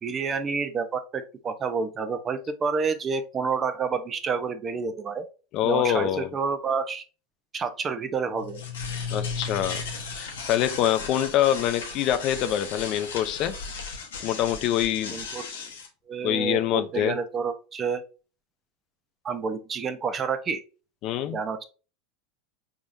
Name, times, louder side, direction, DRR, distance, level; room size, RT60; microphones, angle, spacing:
voice 1, 0.0-5.3 5.6-7.0 7.5-8.6 15.1-15.4 16.1-18.0 19.2-20.6 21.3-21.6, right 5 dB, 30° right, 0.8 m, -29 dB
voice 2, 5.5-6.3 9.1-9.8 10.1-13.6 14.2-15.2 16.2-17.2 21.0-21.4, left 11 dB, 50° left, 0.5 m, -25 dB
sound 1, 8.3-15.9, left 5 dB, 85° left, 1.4 m, -35 dB
4.8 x 3.6 x 2.7 m
hypercardioid pair, 100°, 0 cm